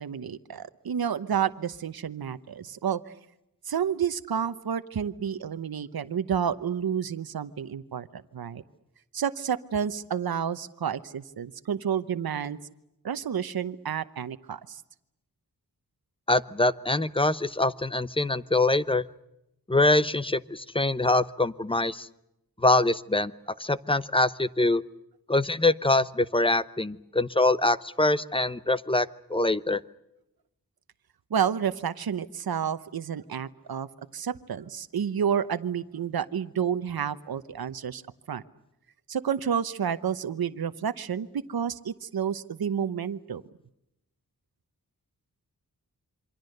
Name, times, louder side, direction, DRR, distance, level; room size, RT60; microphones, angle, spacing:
voice 1, 0.0-3.0 3.6-8.6 9.1-12.6 13.0-14.8 31.3-33.9 34.1-38.0 38.3-38.4 39.1-43.4, right 8 dB, 85° right, 11 dB, 1.0 m, -30 dB
voice 2, 16.3-19.0 19.7-22.1 22.6-23.3 23.6-24.8 25.3-29.8, left 2 dB, 15° left, 15 dB, 0.9 m, -24 dB
27.5 x 25.0 x 6.7 m, 0.85 s
wide cardioid pair, 105°, 36 cm